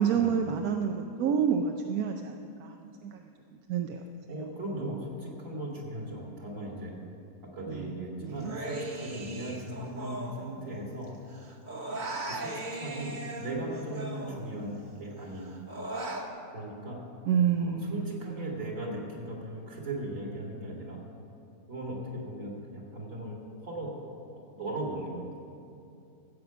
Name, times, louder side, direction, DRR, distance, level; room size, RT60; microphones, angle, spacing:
voice 1, 0.0-3.2 3.7-4.0 7.7-7.9 8.2-8.5 17.3-18.7, right 7 dB, 85° right, 4 dB, 1.1 m, -29 dB
voice 2, 4.3-6.9 7.5-11.1 11.9-15.5 16.5-17.0 17.6-21.0 21.7-23.4 23.6-23.9 24.3-25.2, right 1 dB, 60° right, -2 dB, 2.7 m, -38 dB
Human voice, 8.4-11.0 11.3-14.8 15.2-16.3, right 2 dB, 35° right, 1.1 m, -38 dB
14.5 x 8.2 x 6.0 m, 2.6 s
omnidirectional pair, 1.5 m